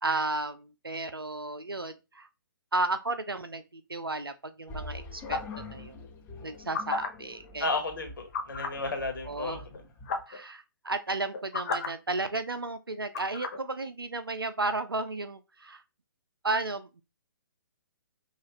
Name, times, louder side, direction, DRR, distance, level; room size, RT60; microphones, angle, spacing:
voice 1, 0.0-2.3 2.7-6.1 6.4-7.7 9.3-9.7 10.3-15.8 16.4-17.0, right 2 dB, 85° right, 0.6 m, -33 dB
sound 1, 4.7-10.2, left 2 dB, 15° left, 0.9 m, -45 dB
sound 2, 5.3-5.6 6.5-7.1 8.3-8.8 9.7-9.8 10.0-10.4 11.2-11.9 13.1-13.6, left 4 dB, 45° left, 0.8 m, -32 dB
voice 2, 7.6-9.6, left 3 dB, 65° left, 1.7 m, -32 dB
5.5 x 2.5 x 3.0 m
figure-of-eight pair, 130°, 12 cm